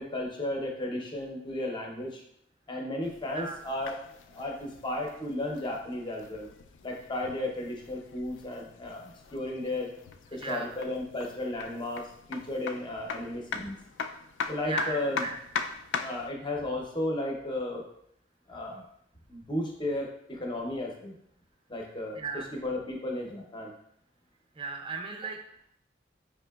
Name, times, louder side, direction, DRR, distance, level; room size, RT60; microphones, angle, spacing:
voice 1, 0.0-2.2 2.7-4.0 4.3-6.5 6.8-9.9 10.3-13.8 14.5-15.2 16.0-17.9 18.5-18.8 19.3-21.2 21.7-23.7, left 1 dB, 25° left, 0 dB, 0.7 m, -34 dB
sound 1, 3.0-16.3, left 5 dB, 80° left, 0.3 m, -41 dB
voice 2, 3.3-3.6 10.4-10.7 14.6-15.3 22.2-22.5 24.6-25.4, right 4 dB, 30° right, 3 dB, 0.5 m, -35 dB
5.1 x 2.8 x 2.3 m, 0.71 s
head